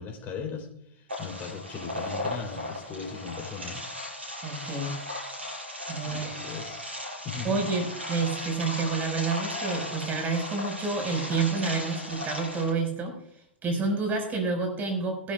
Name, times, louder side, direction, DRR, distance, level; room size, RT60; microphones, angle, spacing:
voice 1, 0.0-3.8 5.9-6.8 7.2-7.7, left 5 dB, 35° left, 2 dB, 3.7 m, -38 dB
sound 1, 1.1-12.7, left 1 dB, 90° right, 6.1 m, -36 dB
voice 2, 4.4-5.0 5.9-6.4 7.4-13.2 13.6-15.3, right 4 dB, 30° right, 3 dB, 5.3 m, -29 dB
21.0 x 12.0 x 2.4 m, 0.69 s
hypercardioid pair, 95°, 6 cm